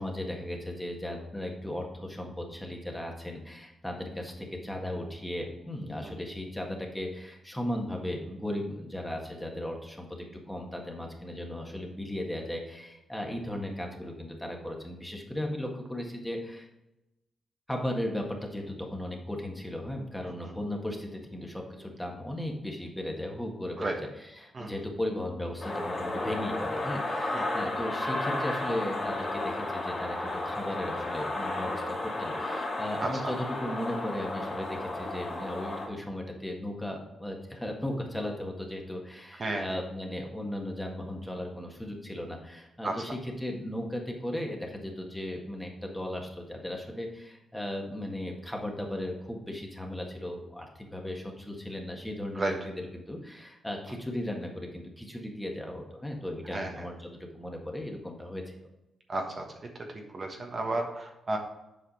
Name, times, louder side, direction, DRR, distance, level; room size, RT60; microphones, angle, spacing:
voice 1, 0.0-16.7 17.7-58.6, left 1 dB, 5° left, 1 dB, 1.7 m, -36 dB
sound 1, 25.6-35.9, left 2 dB, 35° left, 2.0 m, -33 dB
voice 2, 56.5-56.9 59.1-59.4 59.9-61.4, right 2 dB, 40° right, 2 dB, 1.2 m, -32 dB
7.7 x 4.9 x 4.3 m, 0.91 s
cardioid pair, 70°, 0 cm